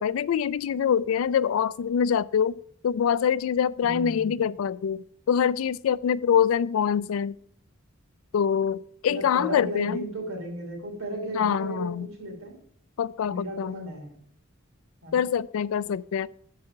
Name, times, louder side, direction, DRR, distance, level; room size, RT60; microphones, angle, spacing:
voice 1, 0.0-2.6 2.8-7.4 8.3-10.1 11.3-12.1 13.0-13.7 15.1-16.3, left 8 dB, 75° left, 0.3 m, -25 dB
voice 2, 3.8-4.4 9.1-12.6 13.2-14.2 15.0-15.2, right 1 dB, 90° right, 2.9 m, -35 dB
7.2 x 4.8 x 6.4 m
head